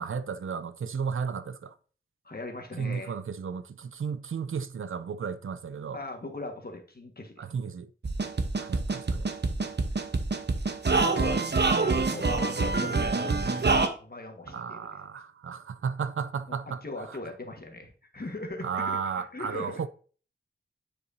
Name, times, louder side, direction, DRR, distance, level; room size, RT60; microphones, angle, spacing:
voice 1, 0.0-1.7 2.8-6.0 7.4-7.9 8.6-9.3 14.5-16.8 17.1-17.2 18.6-19.9, right 6 dB, 85° right, 0.5 m, -34 dB
voice 2, 2.2-3.1 5.9-7.4 9.5-9.7 10.9-11.4 11.7-14.8 16.5-19.8, left 2 dB, 50° left, 1.4 m, -40 dB
sound 1, 8.0-13.9, right 3 dB, 55° right, 0.9 m, -26 dB
9.8 x 4.7 x 2.6 m
wide cardioid pair, 65°, 20 cm